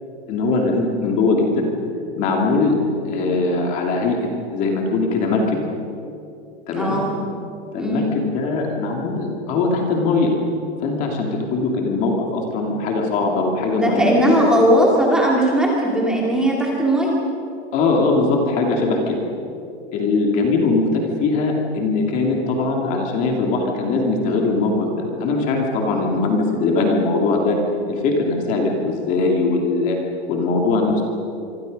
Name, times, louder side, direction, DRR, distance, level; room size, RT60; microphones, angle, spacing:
voice 1, 0.3-1.7 2.2-2.8 3.1-5.6 6.7-7.0 7.7-10.3 10.8-14.4 17.7-19.2 19.9-27.6 27.9-30.0 30.3-31.0, left 3 dB, 25° left, 1 dB, 2.5 m, -21 dB
voice 2, 6.8-7.2 7.8-8.1 13.8-17.1 25.9-26.1, right 1 dB, ahead, -3 dB, 2.4 m, -18 dB
25.5 x 25.0 x 5.3 m, 2.7 s
supercardioid pair, 180°, 32 cm